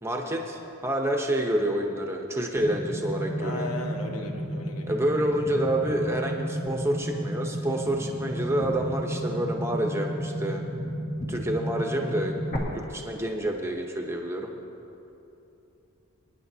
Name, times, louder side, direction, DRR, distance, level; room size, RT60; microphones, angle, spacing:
voice 1, 0.0-3.7 4.9-10.6 11.3-12.4 12.7-14.5, right 1 dB, 10° right, 1 dB, 0.8 m, -28 dB
sound 1, 2.6-12.6, equal, 45° left, 1.7 m, -32 dB
voice 2, 3.4-4.9, left 2 dB, 80° left, 2 dB, 1.3 m, -36 dB
25.0 x 9.7 x 2.8 m, 2.9 s
head